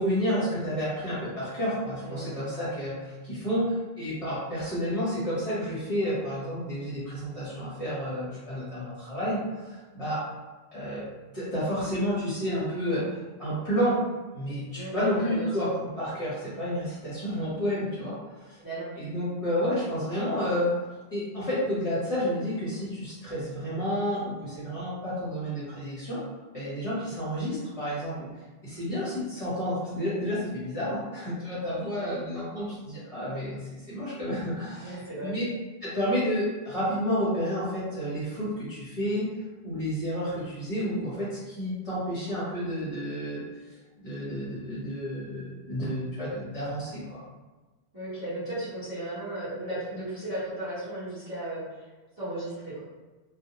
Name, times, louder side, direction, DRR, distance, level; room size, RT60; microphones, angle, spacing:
voice 1, 0.0-10.2 10.7-11.1 11.3-14.0 14.3-18.6 19.0-20.8 21.1-26.2 26.5-28.3 28.6-35.4 35.8-39.3 39.6-43.4 44.0-47.2, equal, 35° left, -11 dB, 0.9 m, -30 dB
voice 2, 2.0-2.4 14.7-15.7 18.6-19.0 31.9-32.1 34.8-35.3 47.9-51.6 52.2-52.8, right 1 dB, 20° right, -12 dB, 1.0 m, -35 dB
2.4 x 2.1 x 2.8 m, 1.2 s
omnidirectional pair, 1.1 m